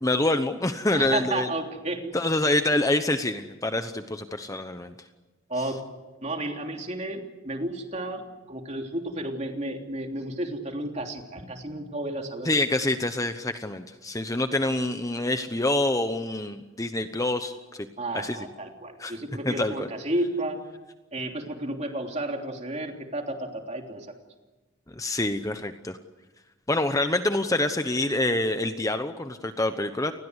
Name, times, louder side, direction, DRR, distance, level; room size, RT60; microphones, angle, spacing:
voice 1, 0.0-1.5 2.1-4.9 5.6-5.7 12.4-17.9 18.1-18.5 19.0-19.1 19.4-19.9 24.9-26.0 26.7-30.1, left 2 dB, 15° left, 8 dB, 1.0 m, -26 dB
voice 2, 0.9-2.2 5.5-5.8 6.2-12.5 18.0-20.6 21.1-24.1, right 1 dB, 35° right, 3 dB, 3.2 m, -32 dB
29.5 x 20.5 x 8.2 m, 1.2 s
head